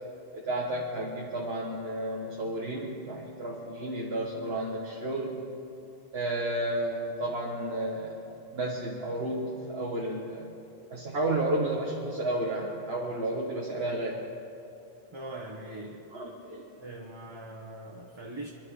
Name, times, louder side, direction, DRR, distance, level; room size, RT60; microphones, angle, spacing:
voice 1, 0.3-5.4 6.1-10.5 10.9-14.3 16.1-16.7, right 1 dB, 70° right, -2 dB, 1.6 m, -32 dB
voice 2, 15.1-16.1 16.8-18.5, right 1 dB, 25° right, -1 dB, 1.1 m, -41 dB
25.0 x 11.0 x 4.8 m, 2.7 s
omnidirectional pair, 1.1 m